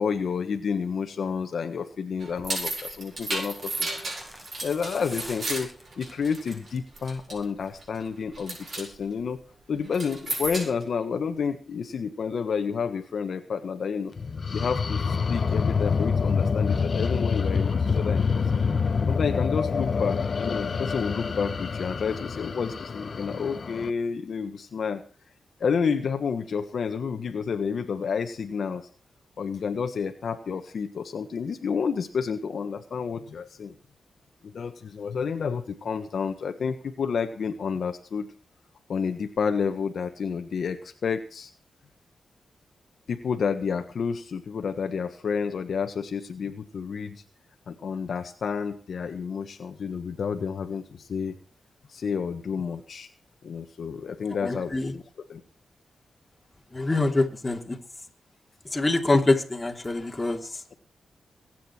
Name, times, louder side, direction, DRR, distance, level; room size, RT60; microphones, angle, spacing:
voice 1, 0.0-4.1 4.6-5.7 6.0-9.4 9.7-14.1 14.5-18.4 19.1-25.0 25.6-28.9 29.4-33.7 34.4-38.3 38.9-41.5 43.1-47.2 47.7-51.4 51.9-53.1 53.4-55.0 55.3-55.4, left 6 dB, 70° left, 7 dB, 1.4 m, -30 dB
sound 1, 2.2-6.7 7.0-7.4 7.8-8.1 8.3-8.9 9.9-10.8, right 2 dB, 50° right, 7.6 m, -33 dB
sound 2, 2.3-2.5 3.3-6.2 6.6-7.0 7.2-7.3, equal, 15° right, 5.1 m, -46 dB
sound 3, 14.2-23.9, left 5 dB, 55° left, 1.0 m, -26 dB
voice 2, 54.4-54.9 56.7-57.8 58.7-60.6, left 2 dB, 25° left, 3 dB, 2.8 m, -25 dB
22.5 x 9.2 x 4.5 m, 0.37 s
cardioid pair, 75°, 0 cm